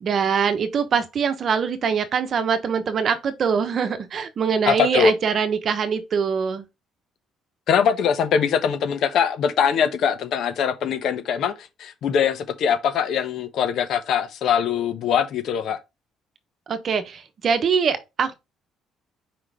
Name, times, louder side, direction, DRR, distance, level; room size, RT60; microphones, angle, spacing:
voice 1, 0.0-6.6 16.7-18.3, right 6 dB, 45° right, 1.0 m, -23 dB
voice 2, 4.7-5.1 7.7-15.8, left 7 dB, 60° left, 1.1 m, -22 dB
5.1 x 3.9 x 4.9 m
cardioid pair, 130°, 0 cm